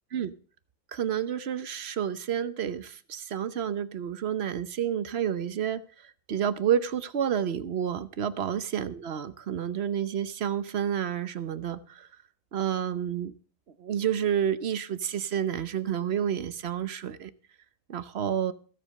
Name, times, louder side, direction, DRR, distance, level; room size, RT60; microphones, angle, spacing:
voice 1, 0.9-12.1 12.5-13.3 13.8-17.3 17.9-18.5, right 9 dB, 55° right, 14 dB, 1.0 m, -30 dB
15.5 x 7.6 x 6.5 m, 0.41 s
omnidirectional pair, 1.4 m